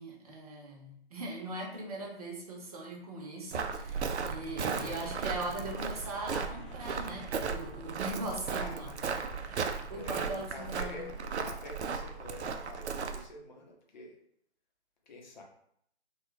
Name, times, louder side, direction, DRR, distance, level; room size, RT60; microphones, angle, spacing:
voice 1, 0.0-8.9 9.4-9.6 9.9-11.1, right 2 dB, 35° right, -1 dB, 0.8 m, -40 dB
Walk footsteps, 3.5-13.3, right 5 dB, 75° right, 0.5 m, -36 dB
sound 1, 4.0-10.6, right 2 dB, 5° right, 0.9 m, -51 dB
voice 2, 4.8-5.3 8.1-9.0 9.5-14.2 15.0-15.4, left 2 dB, 40° left, 0 dB, 0.7 m, -48 dB
2.9 x 2.3 x 3.2 m, 0.69 s
figure-of-eight pair, 145°, 34 cm